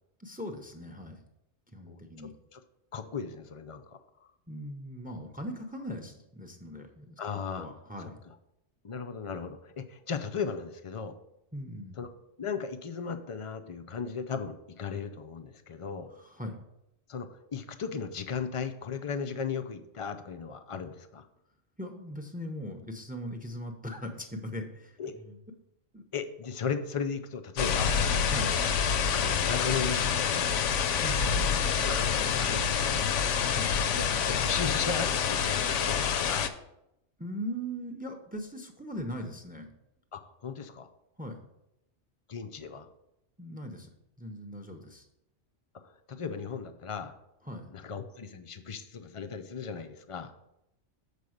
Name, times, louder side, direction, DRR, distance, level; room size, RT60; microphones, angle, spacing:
voice 1, 0.2-1.2 1.7-2.3 4.5-7.2 7.6-8.1 11.5-12.0 16.2-16.6 21.8-25.0 25.2-25.4 25.9-26.0 28.3-28.5 31.0-31.5 33.5-33.7 37.2-39.7 41.2-41.4 43.4-45.0 47.4-47.6, equal, 10° right, 5 dB, 0.6 m, -39 dB
voice 2, 2.9-4.0 7.2-7.7 8.8-11.1 12.0-12.1 12.4-16.1 17.1-21.3 25.0-25.2 26.1-28.0 29.1-30.6 31.2-33.1 33.9-36.5 40.1-40.9 42.3-42.9 45.8-47.1 47.7-50.3, left 6 dB, 45° left, 8 dB, 0.4 m, -36 dB
sound 1, 27.6-36.5, left 7 dB, 80° left, 1.0 m, -27 dB
6.9 x 4.8 x 6.4 m, 0.85 s
omnidirectional pair, 1.2 m